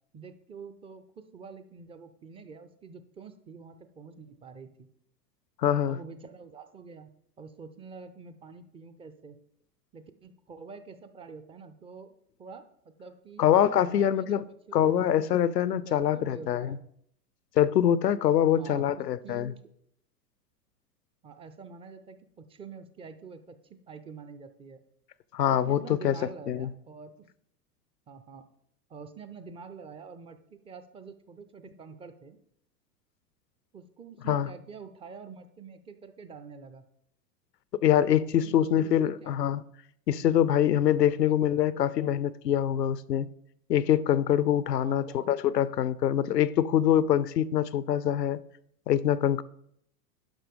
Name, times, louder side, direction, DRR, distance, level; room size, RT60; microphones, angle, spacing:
voice 1, 0.1-4.9 5.9-7.1 7.4-9.4 9.9-12.1 12.4-13.4 14.0-14.4 14.7-14.9 15.8-16.8 18.4-19.6 21.2-24.8 25.5-27.3 28.1-28.4 28.9-32.4 33.7-36.9 38.4-38.9 39.2-39.4 41.2-41.8 44.8-45.3, right 5 dB, 10° right, 0.5 m, -47 dB
voice 2, 5.6-6.0 13.4-14.4 14.7-16.8 17.6-19.5 25.3-26.2 26.5-26.7 34.3-34.5 37.8-39.6 40.1-43.3 43.7-48.4 48.9-49.4, left 10 dB, 80° left, 0.7 m, -24 dB
11.5 x 5.6 x 5.3 m
figure-of-eight pair, 95°, 48 cm